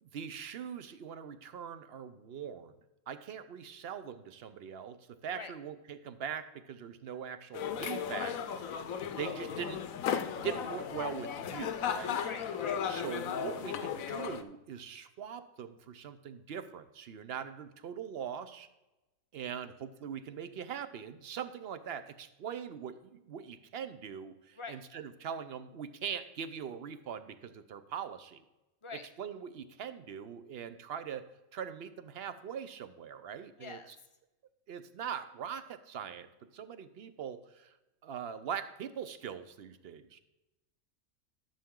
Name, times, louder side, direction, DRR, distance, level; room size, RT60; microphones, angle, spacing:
voice 1, 0.0-2.7 3.1-5.0 5.2-8.4 9.1-9.8 10.3-12.2 12.8-18.7 19.3-28.4 29.2-31.2 31.5-34.0 34.7-36.3 36.5-37.7 38.0-40.2, right 8 dB, 55° right, 12 dB, 0.7 m, -42 dB
sound 1, 7.5-14.4, left 8 dB, 75° left, 1.1 m, -35 dB
voice 2, 12.2-12.8 24.6-24.8 28.8-29.0 33.6-33.9, left 4 dB, 35° left, 8 dB, 0.5 m, -44 dB
13.0 x 7.0 x 3.7 m, 0.99 s
omnidirectional pair, 1.5 m